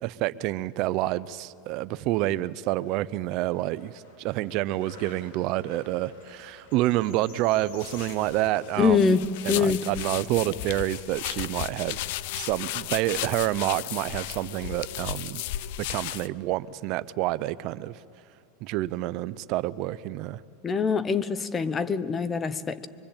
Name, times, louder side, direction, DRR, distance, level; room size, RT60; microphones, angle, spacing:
voice 1, 0.0-9.2 9.4-12.0 12.3-15.4 15.9-17.9 18.6-20.4, right 16 dB, 45° right, 16 dB, 0.6 m, -28 dB
sound 1, 2.0-3.0 3.4-8.5, left 4 dB, 75° left, 4.8 m, -51 dB
sound 2, 7.8-16.3, left 14 dB, 60° left, 0.6 m, -35 dB
voice 2, 8.8-9.8 20.6-22.9, left 5 dB, 20° left, 16 dB, 0.8 m, -24 dB
24.5 x 23.5 x 8.8 m, 2.4 s
supercardioid pair, 140°, 0 cm